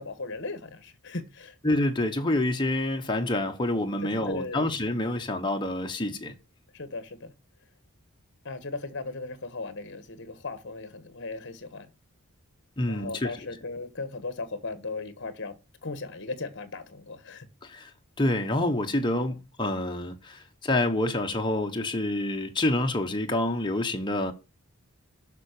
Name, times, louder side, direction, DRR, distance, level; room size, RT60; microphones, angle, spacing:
voice 1, 0.0-1.6 4.0-4.7 6.7-7.3 8.4-11.9 12.9-17.5, left 3 dB, 55° left, 1.3 m, -37 dB
voice 2, 1.6-6.3 12.8-13.3 17.6-17.9 18.2-24.3, left 1 dB, 20° left, 1.0 m, -27 dB
7.3 x 5.8 x 6.6 m
head